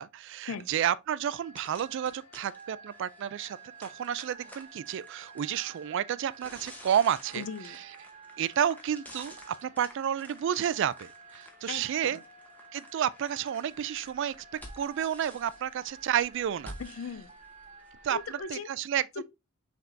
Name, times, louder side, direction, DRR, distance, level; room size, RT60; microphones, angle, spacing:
voice 1, 0.0-7.4 8.4-12.2 12.7-16.7 18.0-18.2 18.5-19.2, right 9 dB, 60° right, 0.3 m, -31 dB
sound 1, 0.6-0.7 1.1-1.2 1.6-18.4, equal, 10° left, 0.9 m, -51 dB
sound 2, 1.2-18.5, right 5 dB, 35° right, 1.2 m, -51 dB
voice 2, 7.4-7.8 11.7-12.2 16.8-17.3 18.1-18.7 19.2-19.3, left 5 dB, 85° left, 0.4 m, -38 dB
5.8 x 3.6 x 2.6 m
head